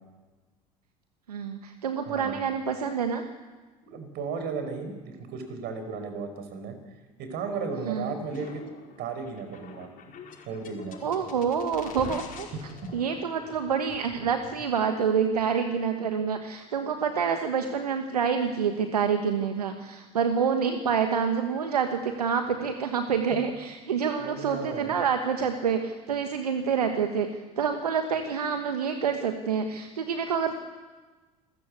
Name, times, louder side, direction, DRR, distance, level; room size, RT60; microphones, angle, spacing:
voice 1, 1.3-3.2 7.9-8.1 11.0-30.5, right 6 dB, 85° right, 7 dB, 1.4 m, -27 dB
voice 2, 2.0-2.4 3.8-6.8 7.2-8.6 9.0-9.9 10.4-11.0 12.5-12.9 23.3-23.4 24.2-25.0, right 5 dB, 60° right, 7 dB, 4.6 m, -35 dB
sound 1, 8.2-14.6, left 6 dB, 50° left, 5.3 m, -45 dB
27.5 x 14.0 x 8.4 m, 1.3 s
hypercardioid pair, 70°, 19 cm